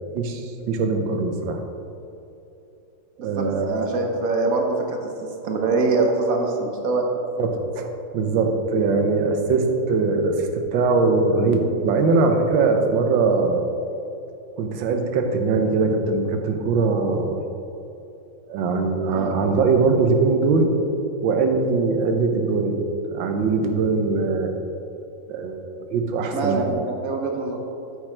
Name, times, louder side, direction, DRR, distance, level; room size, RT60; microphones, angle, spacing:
voice 1, 0.7-1.6 3.2-3.9 7.4-7.9 8.1-13.6 14.6-17.4 18.5-20.7 21.2-22.8 23.0-24.5 25.3-25.6 25.9-26.6, right 4 dB, 75° right, 5 dB, 1.5 m, -21 dB
voice 2, 3.2-5.1 5.4-7.0 19.1-19.3 26.3-27.6, right 3 dB, 55° right, 2 dB, 1.2 m, -24 dB
8.6 x 8.1 x 3.3 m, 2.9 s
omnidirectional pair, 2.1 m